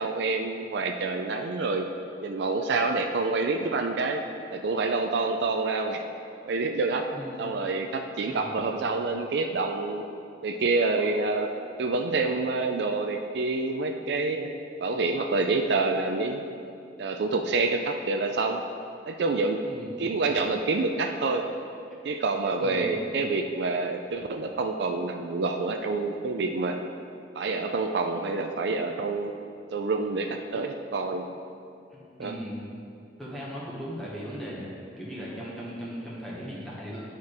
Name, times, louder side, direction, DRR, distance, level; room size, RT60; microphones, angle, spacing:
voice 1, 0.0-1.9 2.2-4.2 4.5-6.0 6.4-7.1 7.4-10.0 10.4-14.5 14.8-16.4 17.0-18.6 19.1-19.6 20.0-21.5 22.0-26.8 27.3-29.3 29.7-31.3 32.2-32.4, right 3 dB, 65° right, 5 dB, 0.4 m, -27 dB
voice 2, 7.1-7.4 8.2-8.6 11.0-11.1 19.6-19.9 22.6-22.9 31.9-32.6 33.2-37.0, equal, ahead, -7 dB, 1.1 m, -38 dB
9.4 x 4.4 x 4.8 m, 2.5 s
head